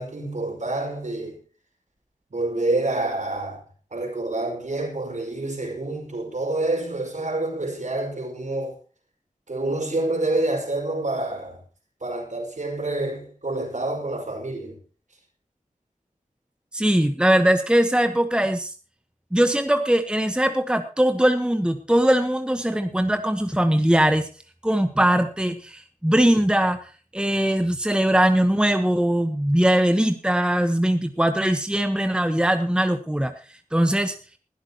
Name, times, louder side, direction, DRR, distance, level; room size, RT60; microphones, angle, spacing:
voice 1, 0.0-1.4 2.3-3.6 3.9-8.8 9.5-11.6 12.0-14.8, right 2 dB, 60° right, 5.4 m, -27 dB
voice 2, 16.7-18.7 19.3-24.3 24.6-33.3 33.7-34.1, right 1 dB, 5° right, 1.2 m, -21 dB
20.5 x 12.5 x 3.0 m
wide cardioid pair, 75°, 14 cm